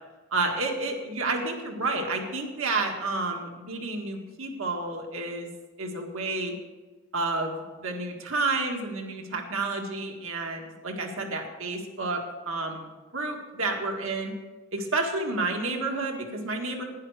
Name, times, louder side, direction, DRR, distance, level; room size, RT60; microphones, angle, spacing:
voice 1, 0.3-5.5 5.8-6.5 7.1-14.3 14.7-16.8, right 3 dB, 75° right, 2 dB, 1.7 m, -30 dB
11.5 x 10.5 x 4.9 m, 1.2 s
head